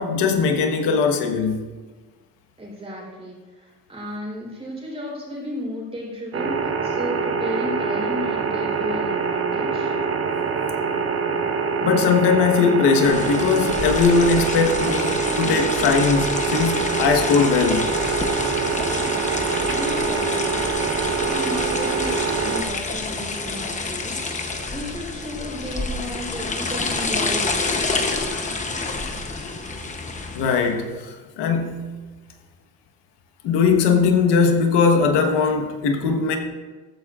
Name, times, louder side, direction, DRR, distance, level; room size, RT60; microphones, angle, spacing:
voice 1, 0.0-1.6 11.8-17.9 30.3-32.0 33.4-36.4, left 5 dB, 85° left, 1.4 m, -20 dB
voice 2, 2.6-9.9 19.0-20.9 21.1-24.1 24.4-27.9, equal, 15° right, 3.8 m, -34 dB
sound 1, 6.3-22.6, right 5 dB, 35° right, 1.0 m, -24 dB
sound 2, 13.0-30.7, left 3 dB, 20° left, 0.9 m, -28 dB
15.0 x 13.0 x 2.5 m
cardioid pair, 160°, 40 cm